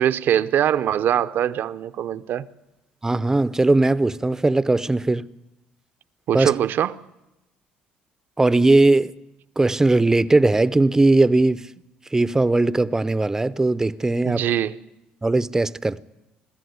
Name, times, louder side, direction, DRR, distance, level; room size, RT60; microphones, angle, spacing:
voice 1, 0.0-2.5 6.3-7.0 14.2-14.8, right 10 dB, 65° right, 0.7 m, -22 dB
voice 2, 3.0-5.3 6.3-6.5 8.4-9.1 9.6-11.6 12.1-14.4 15.2-16.0, right 2 dB, 15° right, 0.6 m, -19 dB
22.0 x 13.5 x 9.5 m
supercardioid pair, 85°, 4 cm